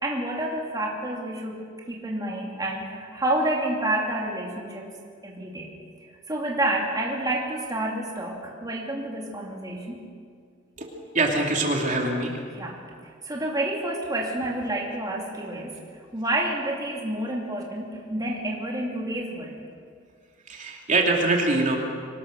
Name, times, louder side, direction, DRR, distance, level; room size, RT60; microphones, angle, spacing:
voice 1, 0.0-4.9 5.2-5.7 6.3-10.0 12.6-12.8 13.2-15.8 16.1-19.6, right 1 dB, 20° right, -2 dB, 2.7 m, -29 dB
voice 2, 11.1-12.3 20.5-21.8, right 2 dB, 40° right, 0 dB, 2.8 m, -23 dB
24.5 x 20.0 x 6.3 m, 2.1 s
head